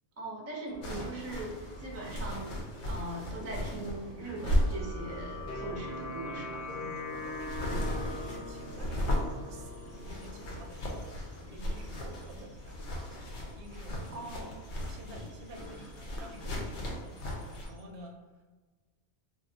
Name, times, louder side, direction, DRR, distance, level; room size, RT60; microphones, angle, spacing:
voice 1, 0.2-6.6 14.1-14.6, right 2 dB, 20° right, -2 dB, 0.4 m, -40 dB
sound 1, 0.6-17.8, equal, 15° left, 0.8 m, -52 dB
sound 2, 0.8-17.7, equal, 90° left, 1.0 m, -37 dB
sound 3, 4.2-11.1, left 2 dB, 65° left, 0.8 m, -42 dB
voice 2, 6.7-10.8 11.4-18.4, right 1 dB, 80° right, 2 dB, 0.9 m, -50 dB
2.6 x 2.4 x 3.7 m, 1.3 s
omnidirectional pair, 1.1 m